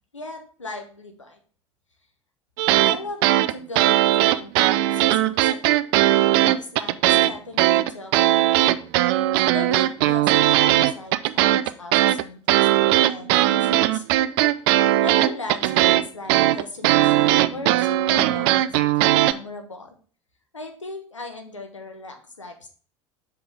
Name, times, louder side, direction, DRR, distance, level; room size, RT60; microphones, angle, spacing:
voice 1, 0.1-1.4 2.8-5.7 6.2-8.7 9.5-14.0 15.0-19.9 20.5-22.7, left 2 dB, 90° left, 4 dB, 1.0 m, -38 dB
sound 1, 2.6-3.0 3.2-7.3 7.6-19.3, right 15 dB, 55° right, 0.4 m, -18 dB
5.8 x 5.1 x 3.3 m, 0.42 s
figure-of-eight pair, 70°, 15 cm